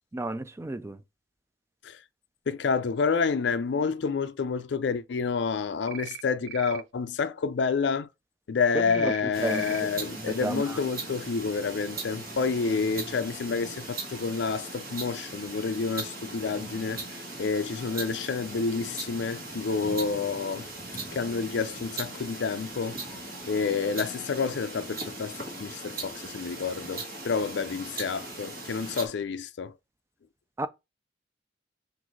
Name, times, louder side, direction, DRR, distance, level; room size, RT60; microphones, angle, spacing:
voice 1, 0.1-1.0 9.0-9.1 9.4-10.8 30.6-30.7, right 2 dB, 15° right, 0.3 m, -33 dB
voice 2, 2.5-8.1 8.5-17.1 17.4-20.7 21.1-23.0 23.5-29.7, left 5 dB, 65° left, 0.4 m, -29 dB
sound 1, 5.9-6.2 6.5-6.8 8.9-9.2 9.5-9.8, right 12 dB, 90° right, 0.4 m, -40 dB
sound 2, 9.3-29.1, right 2 dB, 50° right, 1.5 m, -39 dB
6.1 x 2.6 x 3.1 m
head